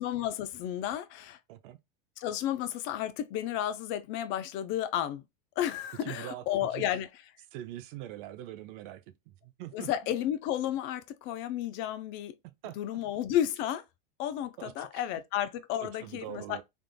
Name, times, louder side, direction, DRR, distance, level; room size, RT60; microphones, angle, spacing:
voice 1, 0.0-1.4 2.2-5.2 5.6-7.1 9.7-12.3 12.8-13.8 14.2-16.6, left 11 dB, 40° left, 0.4 m, -32 dB
voice 2, 1.5-1.8 6.0-7.0 7.5-10.1 12.4-13.0 14.6-15.0 15.8-16.6, right 14 dB, 55° right, 0.6 m, -44 dB
3.6 x 2.4 x 2.2 m
hypercardioid pair, 115°, 30 cm